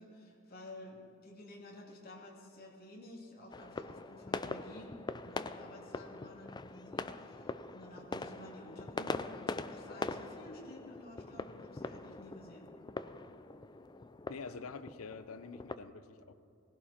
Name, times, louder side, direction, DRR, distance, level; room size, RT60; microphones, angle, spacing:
voice 1, 0.0-4.9 5.2-12.7, left 1 dB, 45° left, -2 dB, 2.6 m, -52 dB
sound 1, 3.5-15.8, left 3 dB, 20° left, 0.4 m, -42 dB
voice 2, 14.3-16.3, left 4 dB, 90° left, 13 dB, 0.7 m, -46 dB
19.5 x 16.0 x 4.3 m, 2.7 s
head